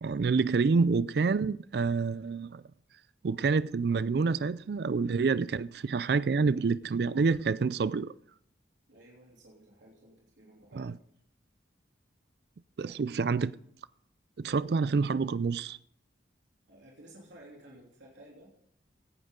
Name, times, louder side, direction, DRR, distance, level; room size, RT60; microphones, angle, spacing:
voice 1, 0.0-2.6 3.2-8.1 10.7-10.9 12.8-13.6 14.4-15.8, right 4 dB, 60° right, 0.4 m, -28 dB
voice 2, 8.9-10.9 12.8-12.9 16.7-18.5, right 1 dB, 85° right, 3.2 m, -54 dB
17.0 x 12.0 x 3.8 m
head